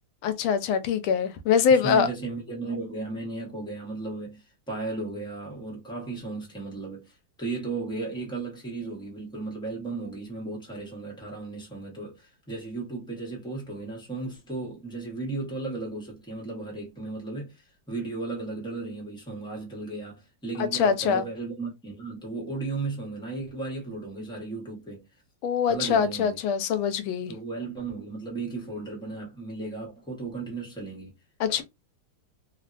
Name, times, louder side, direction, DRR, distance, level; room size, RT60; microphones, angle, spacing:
voice 1, 0.2-2.1 20.6-21.2 25.4-27.3 31.4-31.6, left 7 dB, 85° left, 1.4 m, -23 dB
voice 2, 1.7-25.0 25.7-26.4 27.3-31.1, right 3 dB, 5° left, 0.5 m, -35 dB
3.4 x 2.1 x 2.5 m
omnidirectional pair, 2.1 m